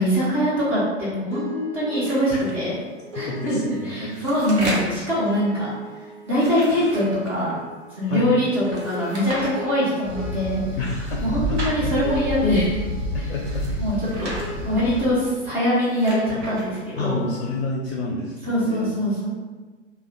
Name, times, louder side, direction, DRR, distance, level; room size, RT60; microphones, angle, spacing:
voice 1, 0.0-2.8 3.1-5.7 6.3-7.5 8.0-10.6 11.2-12.8 13.1-13.3 13.8-14.3 14.6-17.2 18.4-19.3, equal, 5° right, -9 dB, 0.3 m, -23 dB
sound 1, 1.3-17.7, equal, 90° right, 1.0 m, -40 dB
sound 2, 2.0-2.5 3.7-5.0 6.2-7.5 8.7-9.5 10.9-11.8 13.3-14.4 15.6-16.7, right 1 dB, 65° right, 0.9 m, -34 dB
voice 2, 3.2-4.1 8.1-8.3 10.8-11.2 11.5-11.6 13.1-13.6 14.2-14.5 17.0-18.9, left 2 dB, 55° left, -3 dB, 0.5 m, -29 dB
sound 3, 10.0-15.0, left 1 dB, 30° right, 0.7 m, -29 dB
2.7 x 2.1 x 2.5 m, 1.3 s
figure-of-eight pair, 110°, 37 cm